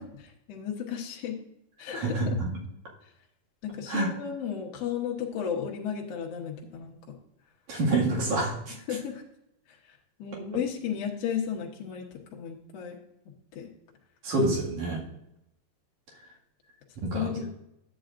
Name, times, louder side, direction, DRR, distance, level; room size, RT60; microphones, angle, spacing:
voice 1, 0.0-1.4 1.8-2.2 3.6-7.0 8.9-9.2 10.2-12.0 12.3-13.0 13.5-13.7 17.1-17.5, left 8 dB, 80° left, -1 dB, 1.4 m, -34 dB
voice 2, 1.9-2.5 3.9-4.1 7.7-8.7 14.2-15.0 17.0-17.3, right 2 dB, 50° right, -3 dB, 3.0 m, -27 dB
11.5 x 8.4 x 2.5 m, 0.82 s
omnidirectional pair, 4.7 m